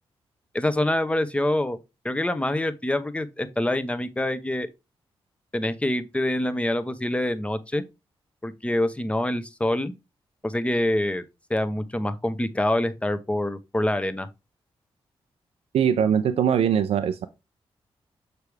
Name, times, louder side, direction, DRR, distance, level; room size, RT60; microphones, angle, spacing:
voice 1, 0.5-1.8 2.0-4.7 5.5-7.8 8.4-9.9 10.4-11.2 11.5-14.3, left 1 dB, 10° left, 0.8 m, -25 dB
voice 2, 15.7-17.3, right 8 dB, 85° right, 0.5 m, -21 dB
6.7 x 4.7 x 3.2 m
cardioid pair, 85°, 10 cm